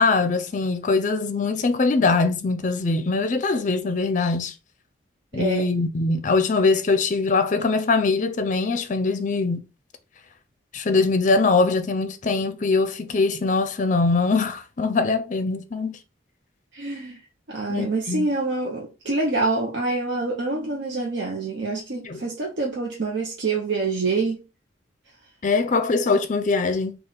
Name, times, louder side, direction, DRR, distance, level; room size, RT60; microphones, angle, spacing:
voice 1, 0.0-4.5 5.3-9.6 10.7-16.0 17.7-18.3 22.0-22.2 25.4-27.0, left 3 dB, 40° left, 0.5 m, -22 dB
voice 2, 5.3-5.7 16.7-17.2 17.5-24.4, right 3 dB, 70° right, 0.8 m, -26 dB
3.5 x 2.4 x 3.8 m
head